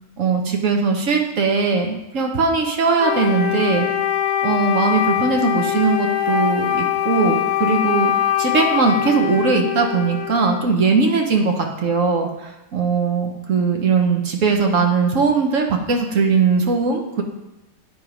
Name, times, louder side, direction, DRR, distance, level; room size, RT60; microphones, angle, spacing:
voice 1, 0.2-3.9 4.4-8.1 8.4-17.2, right 4 dB, 55° right, 2 dB, 1.1 m, -19 dB
Wind instrument woodwind instrument, 3.0-10.7, left 11 dB, 70° left, 1.1 m, -22 dB
9.8 x 3.6 x 4.9 m, 0.97 s
omnidirectional pair, 1.7 m